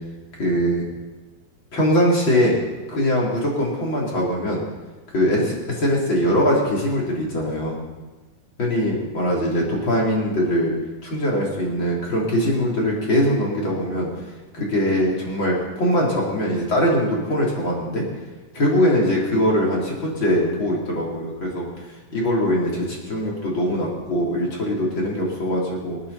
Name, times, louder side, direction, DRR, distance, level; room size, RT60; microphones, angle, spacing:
voice 1, 0.4-0.9 1.7-2.6 2.9-4.6 5.1-7.7 8.6-10.7 11.0-14.1 14.5-18.1 18.5-21.7 22.1-26.0, equal, 35° left, -3 dB, 3.9 m, -22 dB
26.5 x 10.0 x 4.2 m, 1.3 s
omnidirectional pair, 4.1 m